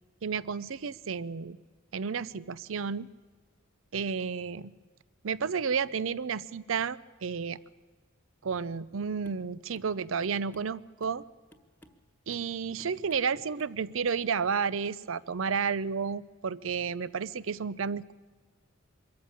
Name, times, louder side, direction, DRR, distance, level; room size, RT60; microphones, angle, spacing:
voice 1, 0.2-1.6 1.9-3.1 3.9-4.7 5.2-7.6 8.4-11.2 12.3-18.1, right 6 dB, 70° right, 19 dB, 0.6 m, -31 dB
sound 1, 9.2-9.5 9.7-9.9 10.2-11.2 11.5-12.0 12.3-12.5 12.8-13.3 13.6-13.8 14.1-14.2, equal, 10° left, 1.2 m, -57 dB
24.0 x 14.0 x 8.7 m, 1.5 s
head